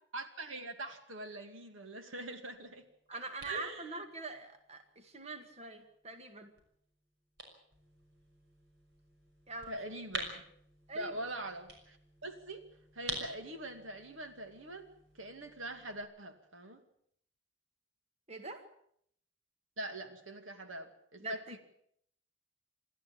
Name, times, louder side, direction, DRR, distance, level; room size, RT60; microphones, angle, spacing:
voice 1, 0.1-2.9 3.1-4.0 9.7-10.4 10.9-12.0 12.2-12.7 12.9-16.8 19.8-21.6, right 1 dB, 80° right, 8 dB, 2.4 m, -43 dB
sound 1, 2.5-16.0, right 2 dB, 55° right, 6.1 m, -49 dB
voice 2, 3.1-6.5 9.5-9.7 10.9-11.1 18.3-18.6 21.2-21.6, right 3 dB, 30° right, 7 dB, 1.8 m, -43 dB
28.0 x 13.0 x 8.7 m, 0.70 s
head